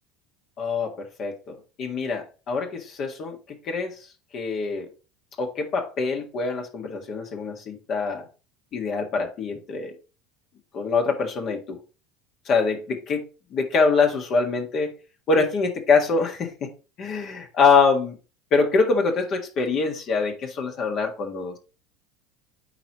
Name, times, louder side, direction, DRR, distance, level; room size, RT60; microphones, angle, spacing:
voice 1, 0.6-0.9 1.2-3.4 3.7-3.9 4.3-4.9 5.4-8.2 8.7-9.9 10.7-11.8 12.5-13.2 13.5-14.9 15.3-16.5 17.0-18.1 18.5-21.6, left 4 dB, 50° left, 1.6 m, -24 dB
8.8 x 4.6 x 3.0 m
hypercardioid pair, 80°, 0 cm